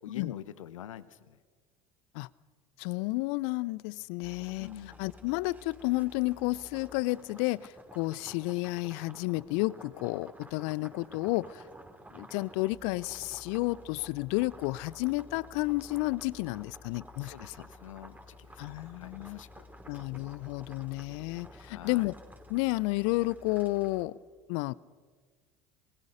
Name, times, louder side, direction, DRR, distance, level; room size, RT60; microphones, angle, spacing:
voice 1, 0.0-1.4 4.6-5.0 17.2-19.6 21.6-22.1, left 11 dB, 75° left, 15 dB, 0.9 m, -45 dB
voice 2, 2.8-4.7 5.0-11.6 12.1-17.5 18.6-19.4 19.9-22.1 22.5-24.2 24.5-24.7, left 22 dB, 60° left, 23 dB, 0.6 m, -31 dB
sound 1, 4.2-24.0, equal, 10° right, 2.9 m, -52 dB
28.0 x 20.0 x 5.1 m, 1.5 s
figure-of-eight pair, 65°, 17 cm